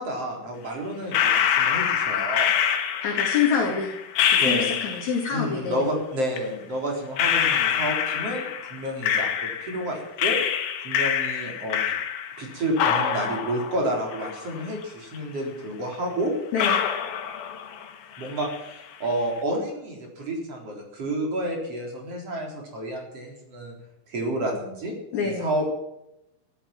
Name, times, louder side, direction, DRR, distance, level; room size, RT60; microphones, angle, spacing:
voice 1, 0.0-2.5 4.4-4.7 5.3-10.4 10.8-11.9 12.4-16.4 18.2-23.7 24.1-24.9 25.2-25.7, right 1 dB, 35° right, 1 dB, 4.4 m, -30 dB
sound 1, 1.1-5.2 6.3-6.4 7.2-9.9 10.2-12.5 12.8-14.8 15.1-15.2 15.9-16.0 16.6-17.9 18.2-18.7, left 8 dB, 70° left, 3.8 m, -25 dB
voice 2, 3.0-3.9 4.3-5.9 16.5-16.8 25.1-25.5, left 6 dB, 45° left, 0 dB, 2.8 m, -26 dB
14.5 x 13.0 x 5.9 m, 0.87 s
omnidirectional pair, 5.6 m